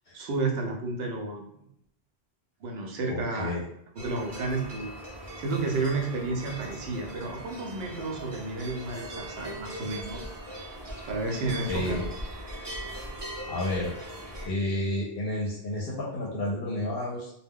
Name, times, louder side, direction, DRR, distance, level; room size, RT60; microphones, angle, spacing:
voice 1, 0.1-1.4 2.6-3.5 4.0-4.9 5.4-10.2 11.1-12.1, right 3 dB, 70° right, 1 dB, 0.8 m, -31 dB
voice 2, 3.1-3.6 11.7-12.1 13.5-13.9 14.4-17.3, left 1 dB, 65° left, -3 dB, 0.7 m, -31 dB
sound 1, 4.0-14.5, right 1 dB, 30° right, 0.5 m, -40 dB
2.2 x 2.1 x 3.5 m, 0.74 s
omnidirectional pair, 1.1 m